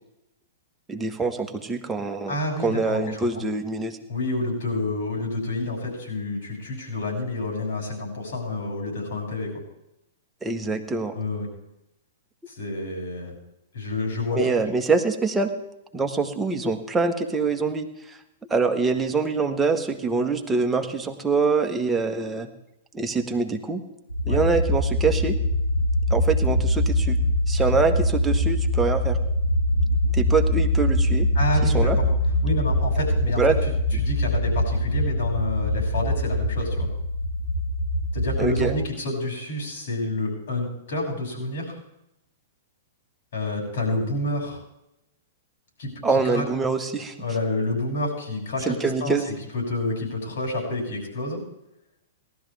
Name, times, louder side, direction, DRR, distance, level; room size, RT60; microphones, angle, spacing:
voice 1, 0.9-4.0 10.4-11.1 14.3-15.5 15.9-18.2 18.5-22.5 22.9-23.8 24.3-25.4 26.1-27.2 27.5-29.2 30.1-31.3 31.6-32.0 33.4-33.5 38.4-38.7 46.0-47.2 48.7-49.3, right 4 dB, 10° right, 3 dB, 1.5 m, -24 dB
voice 2, 2.3-3.5 4.1-9.6 11.1-11.5 12.5-13.4 13.7-14.4 24.3-24.4 31.3-32.0 32.4-33.4 33.9-36.9 38.1-41.8 43.3-44.6 45.8-46.4 47.2-49.2 49.5-51.4, left 2 dB, 65° left, -1 dB, 7.0 m, -29 dB
sound 1, 24.1-38.8, left 1 dB, 80° left, 4.8 m, -23 dB
18.5 x 12.5 x 3.6 m, 0.87 s
figure-of-eight pair, 110°, 0 cm